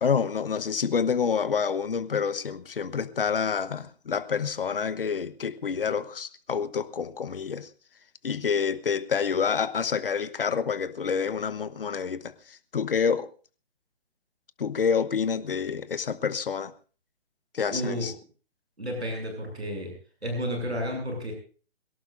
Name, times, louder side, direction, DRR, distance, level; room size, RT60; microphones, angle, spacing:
voice 1, 0.0-7.7 8.2-13.3 14.6-16.7 17.5-18.1, left 6 dB, 60° left, 1.1 m, -28 dB
voice 2, 17.7-18.1 18.8-19.9 20.2-21.3, equal, 85° right, 7.0 m, -31 dB
23.0 x 17.5 x 2.6 m
figure-of-eight pair, 140°, 32 cm